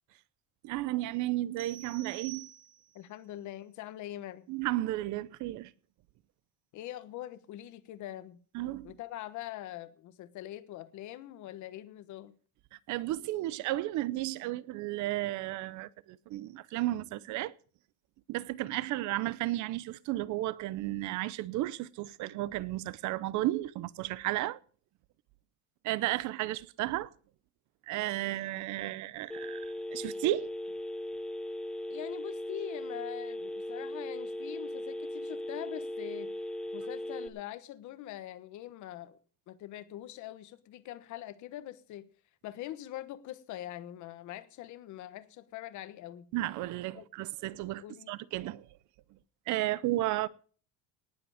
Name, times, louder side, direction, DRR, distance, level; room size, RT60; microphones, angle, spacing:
voice 1, 0.6-2.5 4.5-5.7 8.5-8.9 12.9-17.5 18.3-24.6 25.8-27.1 27.9-29.7 29.9-30.5 46.3-48.7 49.5-50.3, right 16 dB, 55° right, 0.7 m, -33 dB
sound 1, 1.6-3.1, right 13 dB, 25° right, 1.1 m, -48 dB
voice 2, 2.9-4.5 6.7-8.4 8.8-12.3 31.9-36.3 36.7-39.2 39.5-42.1 42.4-46.3 46.9-47.1 47.8-48.1, left 13 dB, 55° left, 1.2 m, -43 dB
Telephone, 29.3-37.3, left 1 dB, ahead, 0.9 m, -38 dB
19.0 x 7.8 x 4.9 m
cardioid pair, 155°, 36 cm